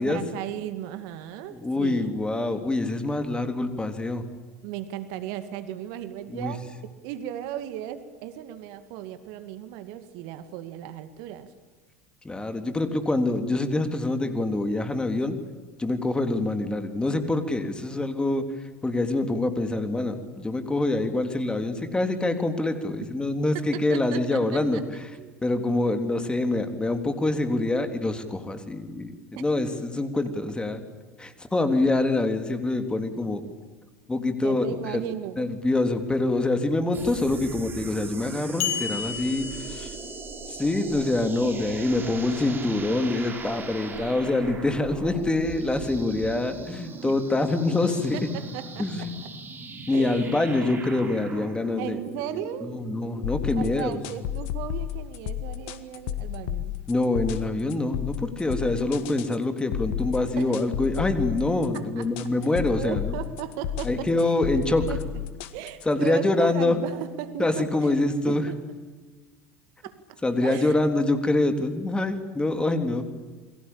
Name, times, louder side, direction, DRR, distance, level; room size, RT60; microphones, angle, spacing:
voice 1, 0.0-2.1 4.6-6.6 7.0-11.5 23.5-25.4 29.3-29.4 34.4-35.5 47.0-47.2 48.1-49.1 49.9-50.3 51.8-52.8 53.6-56.8 60.4-60.6 61.7-62.1 62.8-64.4 64.7-65.2 65.5-67.9 68.3-68.6 69.8-70.8, right 11 dB, 60° right, 11 dB, 2.1 m, -36 dB
voice 2, 1.5-4.2 6.3-6.5 12.2-15.4 15.8-18.4 18.8-24.8 25.4-30.8 31.2-33.4 34.1-35.0 35.4-39.9 40.5-48.2 48.8-49.2 49.9-52.0 52.6-54.0 56.9-63.1 63.8-64.8 65.9-66.8 67.4-68.5 70.2-73.0, left 2 dB, 10° left, 7 dB, 3.7 m, -25 dB
sound 1, 36.9-53.7, right 4 dB, 30° right, 5.8 m, -39 dB
sound 2, 38.6-40.4, left 8 dB, 75° left, 3.2 m, -32 dB
sound 3, 53.2-66.1, left 11 dB, 60° left, 2.0 m, -32 dB
28.5 x 23.0 x 8.9 m, 1.3 s
figure-of-eight pair, 75°, 7 cm